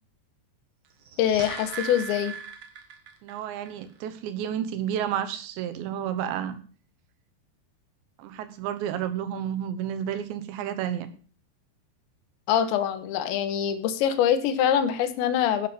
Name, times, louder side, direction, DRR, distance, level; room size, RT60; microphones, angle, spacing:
sound 1, 0.9-3.4 3.7-3.8, right 6 dB, 65° right, 1.5 m, -38 dB
voice 1, 1.2-2.3 12.5-15.7, left 9 dB, 85° left, 12 dB, 3.4 m, -24 dB
voice 2, 3.2-6.6 8.2-11.1, right 9 dB, 80° right, 11 dB, 3.4 m, -31 dB
11.0 x 8.5 x 6.9 m, 0.41 s
omnidirectional pair, 5.1 m